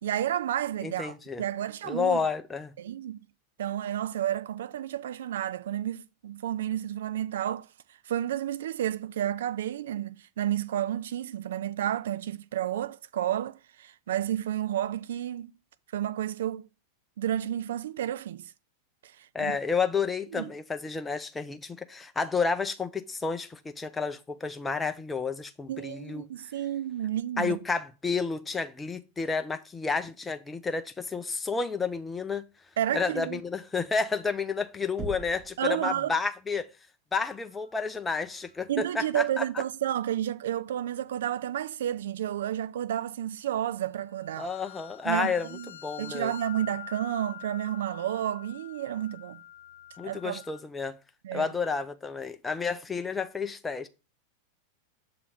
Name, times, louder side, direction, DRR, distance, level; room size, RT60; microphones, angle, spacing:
voice 1, 0.0-2.2 2.8-3.2 3.6-7.7 8.1-15.5 15.9-16.7 17.2-18.5 19.0-19.6 20.3-20.5 25.7-27.6 32.8-33.4 35.6-36.1 38.7-44.5 45.0-45.7 46.0-49.4 50.0-50.4 51.2-51.5, right 11 dB, 60° right, 0.3 m, -31 dB
voice 2, 0.8-1.4 1.8-2.7 19.3-26.3 27.4-32.4 32.9-36.7 37.1-39.4 44.4-46.3 50.0-51.0 51.3-53.9, left 5 dB, 10° left, 0.5 m, -31 dB
Knock, 35.0-35.6, right 3 dB, 25° right, 1.1 m, -38 dB
sound 1, 37.5-37.9 38.3-38.6 44.1-50.6, left 12 dB, 75° left, 0.5 m, -46 dB
6.7 x 2.9 x 4.9 m
figure-of-eight pair, 90°, 0 cm